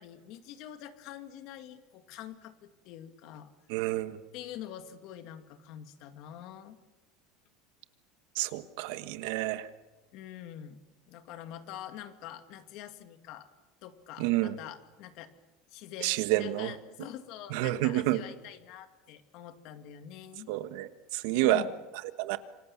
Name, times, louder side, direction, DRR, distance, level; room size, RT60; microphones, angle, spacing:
voice 1, 0.0-3.5 4.3-6.8 10.1-10.8 11.1-13.5 13.8-15.3 15.7-20.5 21.3-21.7, left 11 dB, 55° left, 9 dB, 2.2 m, -45 dB
voice 2, 3.7-4.2 8.3-9.7 14.2-14.6 16.0-16.7 17.5-18.2 20.5-21.6 22.2-22.4, right 16 dB, 65° right, 12 dB, 1.4 m, -29 dB
27.5 x 25.0 x 7.2 m, 1.1 s
cardioid pair, 160°, 0 cm